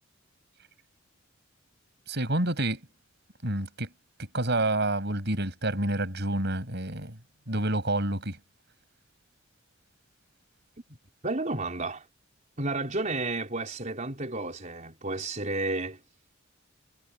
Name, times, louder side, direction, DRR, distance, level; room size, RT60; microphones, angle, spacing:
voice 1, 2.1-2.8 3.4-3.9 4.3-7.2 7.5-8.4, right 1 dB, 55° right, 7.3 m, -28 dB
voice 2, 11.2-12.0 12.6-16.0, right 2 dB, 40° right, 4.7 m, -31 dB
head